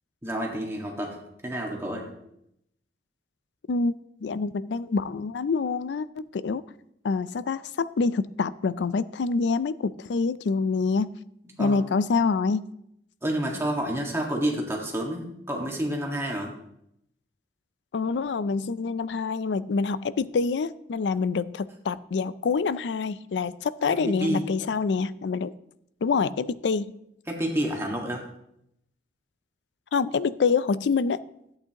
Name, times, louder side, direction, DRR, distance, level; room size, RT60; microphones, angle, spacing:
voice 1, 0.2-1.2 1.4-2.0 11.6-11.8 13.2-16.5 23.9-24.5 27.3-28.2, right 1 dB, 15° right, 0 dB, 1.6 m, -29 dB
voice 2, 4.2-6.6 7.0-11.1 11.6-12.6 17.9-25.5 26.0-26.9 29.9-31.2, left 4 dB, 75° left, 16 dB, 0.4 m, -26 dB
13.5 x 8.7 x 2.9 m, 0.78 s
head